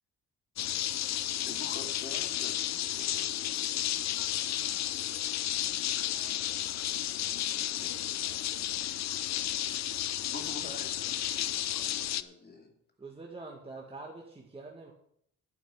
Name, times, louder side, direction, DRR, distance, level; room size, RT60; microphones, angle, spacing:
sound 1, 0.6-12.2, left 12 dB, 65° left, 0.6 m, -32 dB
voice 1, 1.1-3.6 7.5-8.0 10.3-12.7, left 3 dB, 30° left, 2 dB, 2.6 m, -47 dB
voice 2, 3.8-5.3 6.1-8.9, right 5 dB, 65° right, 2 dB, 3.8 m, -59 dB
voice 3, 13.0-14.9, right 3 dB, 20° right, 0 dB, 1.9 m, -45 dB
10.5 x 6.0 x 8.9 m, 0.70 s
cardioid pair, 90°, 30 cm